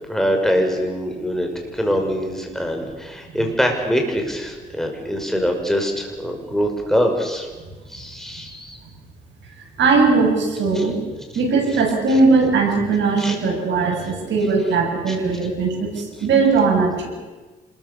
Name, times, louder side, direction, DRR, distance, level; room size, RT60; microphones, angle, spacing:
voice 1, 0.1-7.5 7.9-8.8 10.7-10.8 13.2-13.3 15.1-15.2, equal, ahead, 2 dB, 5.9 m, -23 dB
voice 2, 9.8-11.0 11.3-17.1, right 4 dB, 65° right, 1 dB, 7.9 m, -19 dB
26.5 x 22.0 x 7.1 m, 1.3 s
cardioid pair, 90°, 20 cm